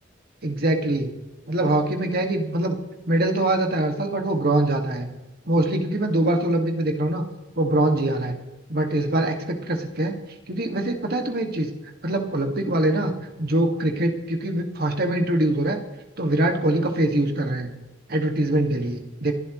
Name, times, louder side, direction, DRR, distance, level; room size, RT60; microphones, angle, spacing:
voice 1, 0.4-1.1 1.5-2.8 3.1-5.1 5.5-7.2 7.6-8.4 8.7-10.2 10.5-11.7 12.0-13.1 13.4-15.8 16.2-17.7 18.1-19.3, right 1 dB, 50° right, 4 dB, 2.0 m, -23 dB
28.5 x 12.0 x 3.2 m, 1.1 s
head